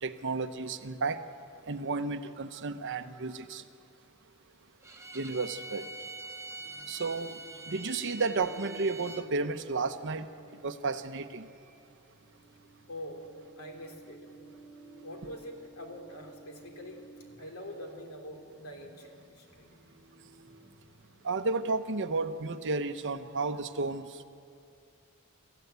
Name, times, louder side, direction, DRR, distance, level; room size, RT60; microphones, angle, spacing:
voice 1, 0.0-1.2 1.7-3.6 5.1-5.9 6.9-7.4 7.7-10.3 10.6-11.4 21.2-24.2, right 3 dB, 60° right, 10 dB, 0.9 m, -32 dB
Bowed string instrument, 4.8-9.3, right 2 dB, 15° right, 1.3 m, -44 dB
sound 1, 6.6-21.7, right 3 dB, 35° right, 5.8 m, -56 dB
voice 2, 12.9-13.2 13.6-14.3 15.0-17.0 17.4-19.7, left 1 dB, 70° left, 3 dB, 3.3 m, -44 dB
26.0 x 15.0 x 8.2 m, 2.5 s
head